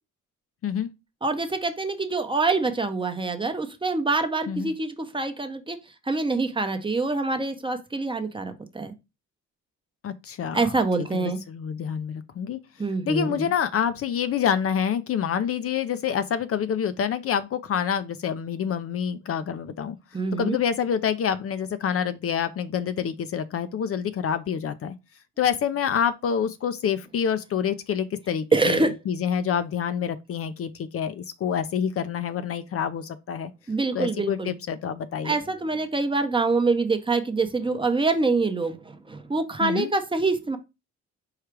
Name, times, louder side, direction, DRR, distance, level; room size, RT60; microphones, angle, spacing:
voice 1, 1.2-5.8 6.1-8.9 10.5-11.4 12.8-13.5 20.1-20.6 28.5-29.0 33.7-34.5 35.2-40.6, right 3 dB, 15° right, 0.7 m, -25 dB
voice 2, 10.0-10.7 11.1-12.6 13.1-20.0 20.4-25.0 25.4-33.5 33.9-35.4 39.6-39.9, left 8 dB, 50° left, 0.5 m, -27 dB
4.8 x 2.3 x 4.6 m
cardioid pair, 90°, 30 cm